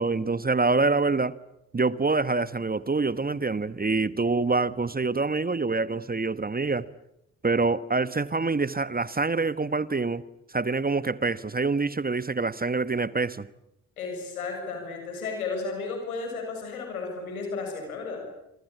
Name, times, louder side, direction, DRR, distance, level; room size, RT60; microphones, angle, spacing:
voice 1, 0.0-1.4 1.7-6.9 7.4-10.2 10.5-13.5, right 3 dB, 20° right, 1.3 m, -26 dB
voice 2, 14.0-18.2, left 4 dB, 90° left, 7.0 m, -33 dB
27.0 x 24.5 x 8.6 m
hypercardioid pair, 45°, 42 cm